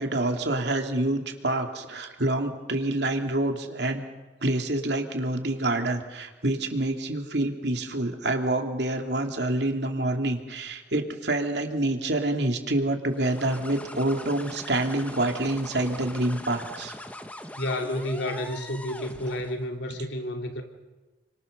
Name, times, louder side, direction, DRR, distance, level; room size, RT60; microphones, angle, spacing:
voice 1, 0.0-4.0 4.4-16.9, right 1 dB, 65° right, 4 dB, 2.9 m, -27 dB
sound 1, 13.1-19.7, left 1 dB, 10° left, 1.4 m, -41 dB
voice 2, 17.5-20.6, left 1 dB, 75° left, 4 dB, 3.1 m, -31 dB
29.5 x 25.0 x 6.8 m, 1.2 s
head